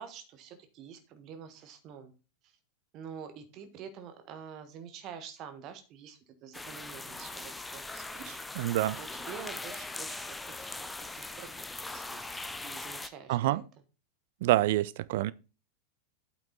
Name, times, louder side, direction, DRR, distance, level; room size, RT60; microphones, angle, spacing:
voice 1, 0.0-2.1 2.4-2.6 2.9-13.7, right 7 dB, 35° right, 1.3 m, -47 dB
sound 1, 6.5-13.1, left 2 dB, 10° left, 0.6 m, -40 dB
voice 2, 8.6-9.0 13.3-13.6 14.4-15.3, right 16 dB, 50° right, 0.4 m, -26 dB
8.6 x 5.8 x 3.9 m
figure-of-eight pair, 90°, 0 cm